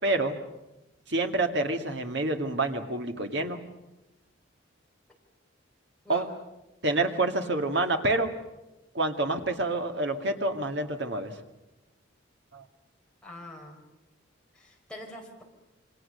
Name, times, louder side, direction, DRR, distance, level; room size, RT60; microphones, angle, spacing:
voice 1, 0.0-0.4 1.1-3.6 6.1-6.3 6.8-8.3 8.9-11.4 12.5-12.6, right 2 dB, 60° right, 5 dB, 2.0 m, -27 dB
voice 2, 13.2-13.8 14.5-15.4, left 1 dB, 5° left, -1 dB, 4.0 m, -43 dB
27.0 x 25.0 x 6.7 m, 0.99 s
head